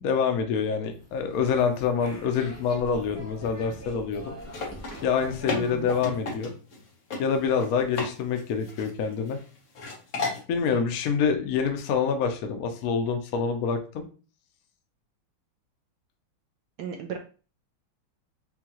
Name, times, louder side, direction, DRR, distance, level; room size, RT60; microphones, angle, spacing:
voice 1, 0.0-4.3 5.0-6.5 7.2-9.4 10.5-14.1, left 6 dB, 70° left, 5 dB, 0.8 m, -26 dB
sound 1, 0.8-6.3, equal, 15° left, 0.5 m, -44 dB
sound 2, 4.4-6.8 7.1-7.2 7.6-8.1 8.4-9.4 9.7-10.4, left 3 dB, 50° left, 1.3 m, -33 dB
voice 2, 5.5-5.9 10.7-10.8 16.8-17.2, right 7 dB, 75° right, 3 dB, 0.9 m, -36 dB
5.7 x 2.3 x 2.9 m, 0.36 s
omnidirectional pair, 2.3 m